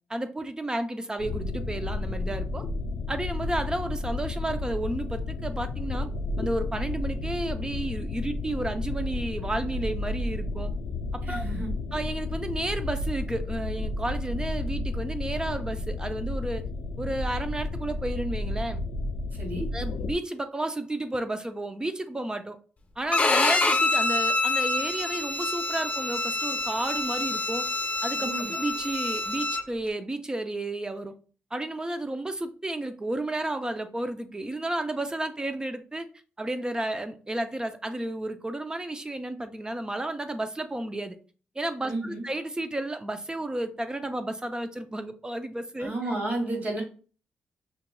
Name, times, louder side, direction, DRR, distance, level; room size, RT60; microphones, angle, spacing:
voice 1, 0.1-2.6 3.1-6.1 6.4-10.7 11.1-11.4 11.9-16.7 17.0-18.8 19.7-22.6 23.0-27.7 28.0-31.1 31.5-36.1 36.4-41.2 41.6-45.9, right 1 dB, 20° right, 0.6 m, -32 dB
sound 1, 1.2-20.1, left 2 dB, 75° left, 0.3 m, -32 dB
voice 2, 11.3-11.7 19.4-19.7 28.2-28.5 41.9-42.2 45.8-46.8, right 2 dB, 50° right, 2.1 m, -31 dB
Bowed string instrument, 23.1-29.6, left 2 dB, 35° left, 0.9 m, -26 dB
5.7 x 2.8 x 2.2 m
cardioid pair, 65°, 4 cm